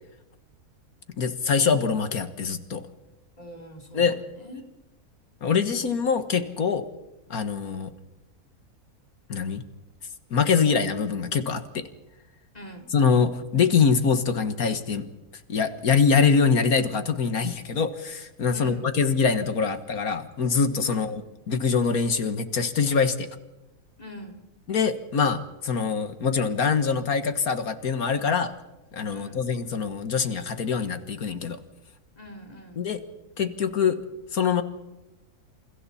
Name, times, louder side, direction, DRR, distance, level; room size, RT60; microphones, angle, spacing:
voice 1, 1.2-2.8 3.9-4.2 5.4-6.9 7.3-7.9 9.3-9.6 10.3-11.9 12.9-15.1 15.5-21.2 21.5-23.3 24.7-28.5 28.9-31.6 32.8-33.0 33.4-34.0 34.3-34.6, left 5 dB, 70° left, 9 dB, 1.9 m, -24 dB
voice 2, 3.4-4.1 4.3-4.6 12.5-12.9 18.5-18.9 20.9-21.2 24.0-24.4 29.1-29.5 32.2-32.8, equal, 25° left, 2 dB, 3.5 m, -43 dB
29.0 x 28.5 x 4.3 m, 1.0 s
omnidirectional pair, 1.6 m